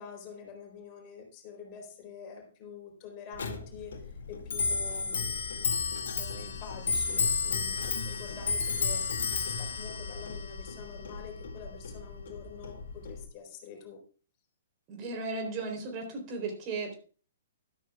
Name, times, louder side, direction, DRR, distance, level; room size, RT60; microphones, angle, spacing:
voice 1, 0.0-5.7 6.1-14.0, left 6 dB, 35° left, 2 dB, 3.9 m, -47 dB
Clock, 3.4-13.2, left 5 dB, 60° left, 2.1 m, -32 dB
voice 2, 14.9-16.9, right 3 dB, 35° right, 3 dB, 3.6 m, -36 dB
13.0 x 12.5 x 2.4 m, 0.39 s
figure-of-eight pair, 120°, 0 cm